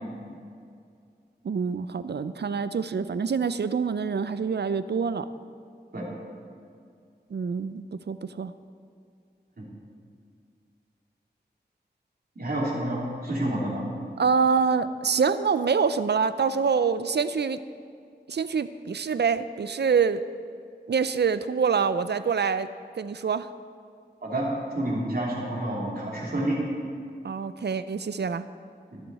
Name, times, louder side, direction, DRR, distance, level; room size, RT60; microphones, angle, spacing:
voice 1, 1.4-5.3 7.3-8.5 14.2-17.6 18.3-20.2 20.9-22.7 22.9-23.5 27.2-28.5, right 5 dB, 80° right, 13 dB, 0.5 m, -26 dB
voice 2, 12.4-13.9 24.2-24.5 24.7-26.6 28.9-29.0, right 1 dB, 60° right, -4 dB, 3.4 m, -29 dB
22.0 x 7.9 x 4.2 m, 2.3 s
wide cardioid pair, 65°, 17 cm